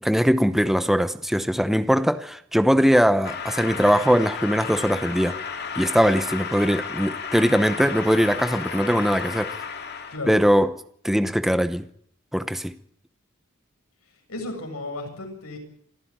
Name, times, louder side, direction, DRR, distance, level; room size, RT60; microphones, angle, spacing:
voice 1, 0.0-5.4 5.8-9.6 10.3-10.7 11.0-11.9 12.3-12.7, equal, ahead, 0.8 m, -21 dB
sound 1, 3.2-10.2, left 6 dB, 50° left, 2.4 m, -33 dB
voice 2, 10.1-10.4 14.3-15.6, left 2 dB, 90° left, 7.7 m, -33 dB
27.0 x 13.5 x 8.8 m
head